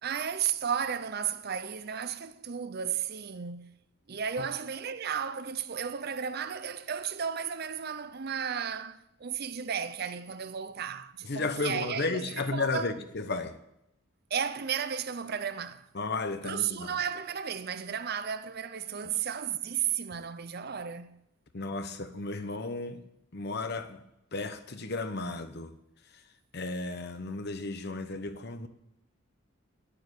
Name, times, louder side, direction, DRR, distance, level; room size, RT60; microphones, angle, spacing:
voice 1, 0.0-3.8 4.1-13.0 14.3-15.9 16.4-21.2, right 7 dB, 50° right, 0.6 m, -34 dB
voice 2, 11.3-13.6 15.9-16.9 21.5-23.0 23.3-24.0 24.3-25.7 26.5-28.7, left 3 dB, 55° left, 0.9 m, -34 dB
9.9 x 8.6 x 8.4 m
head